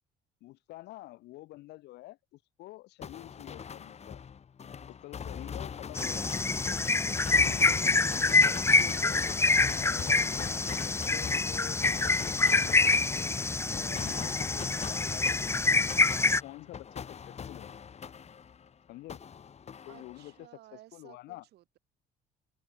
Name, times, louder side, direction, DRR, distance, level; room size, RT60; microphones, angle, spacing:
voice 1, 0.4-4.2 4.8-6.3 7.1-9.2 9.7-13.3 13.7-15.9 16.2-17.8 18.9-19.2 19.9-21.4, left 18 dB, 80° left, 2.5 m, -48 dB
sound 1, 3.0-18.7 19.1-20.4, left 7 dB, 40° left, 5.4 m, -42 dB
sound 2, 5.9-16.4, left 3 dB, 15° left, 0.9 m, -26 dB
voice 2, 19.9-21.8, right 15 dB, 75° right, 5.2 m, -55 dB
cardioid pair, 110°, 17 cm